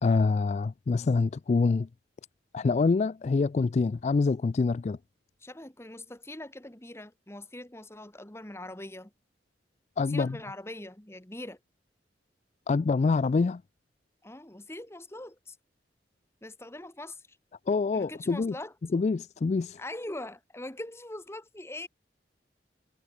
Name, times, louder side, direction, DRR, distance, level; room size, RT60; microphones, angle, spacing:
voice 1, 0.0-1.9 2.5-5.0 10.0-10.4 12.7-13.6 17.7-18.5 18.9-19.8, left 4 dB, 40° left, 0.3 m, -26 dB
voice 2, 5.4-9.1 10.1-11.6 14.2-15.6 16.4-17.2 17.9-18.7 19.8-21.9, left 1 dB, 15° left, 1.8 m, -42 dB
head